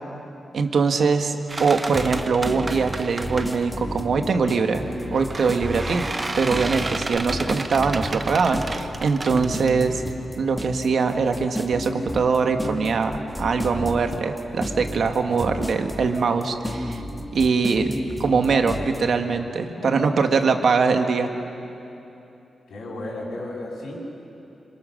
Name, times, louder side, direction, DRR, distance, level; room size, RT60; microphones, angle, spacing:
voice 1, 0.5-6.1 6.4-10.0 10.4-17.0 17.3-21.3, right 5 dB, 60° right, 5 dB, 1.6 m, -22 dB
sound 1, 1.5-3.8 4.9-10.3, right 2 dB, 20° right, 0.9 m, -33 dB
sound 2, 1.9-19.0, equal, 5° left, 1.7 m, -31 dB
voice 2, 19.8-20.3 22.7-24.0, left 1 dB, 80° left, -2 dB, 6.7 m, -33 dB
27.0 x 26.5 x 6.5 m, 2.9 s
wide cardioid pair, 150°, 0 cm